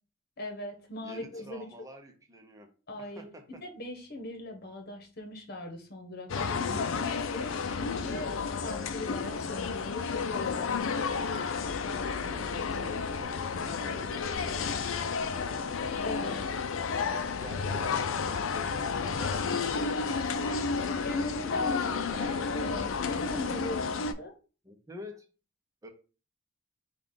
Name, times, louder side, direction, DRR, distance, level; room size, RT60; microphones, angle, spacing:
voice 1, 0.4-1.7 2.9-11.0 16.0-16.5 21.0-24.3, left 2 dB, 55° left, 5 dB, 1.1 m, -39 dB
voice 2, 1.0-2.7 3.0-3.6 12.1-15.4 15.9-21.0 21.6-22.9 24.6-25.3 25.8-25.9, equal, 15° right, 4 dB, 0.7 m, -48 dB
sound 1, 6.3-24.1, left 5 dB, 85° left, 0.5 m, -31 dB
5.3 x 2.4 x 3.7 m, 0.36 s
head